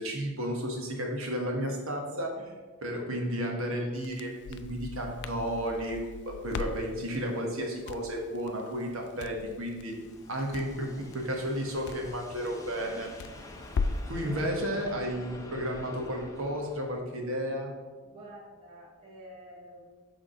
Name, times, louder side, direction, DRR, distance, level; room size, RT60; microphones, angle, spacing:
voice 1, 0.0-2.4 2.8-6.0 6.3-9.9 10.3-13.1 14.1-17.7, equal, 65° right, 1 dB, 1.3 m, -33 dB
Crackle, 3.9-14.2, left 4 dB, 50° left, 0.3 m, -39 dB
sound 1, 9.6-16.9, left 1 dB, 15° left, 0.6 m, -48 dB
voice 2, 14.1-14.6 18.0-19.8, right 2 dB, 25° right, -9 dB, 1.8 m, -47 dB
6.4 x 3.6 x 5.0 m, 1.3 s
head